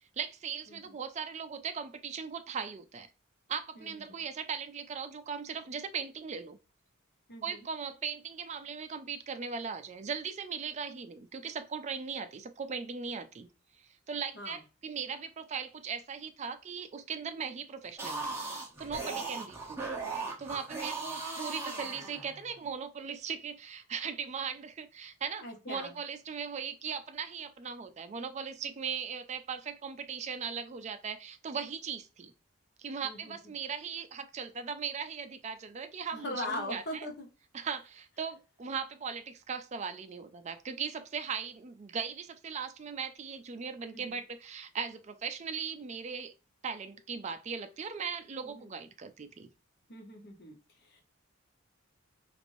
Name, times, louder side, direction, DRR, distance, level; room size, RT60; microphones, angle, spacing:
voice 1, 0.2-3.1 3.5-6.6 7.4-13.5 14.1-18.4 18.8-19.9 20.4-32.3 32.8-37.1 37.5-46.3 46.6-49.5, right 6 dB, 30° right, 0.3 m, -38 dB
voice 2, 3.8-4.2 7.3-7.7 14.3-14.6 19.1-19.4 25.4-26.0 33.0-33.3 36.1-37.3 44.0-44.2 48.4-48.7 49.9-50.6 50.8-51.0, left 1 dB, 50° left, 0.9 m, -41 dB
sound 1, 17.8-22.6, right 4 dB, 10° right, 0.8 m, -38 dB
3.1 x 2.5 x 2.6 m
head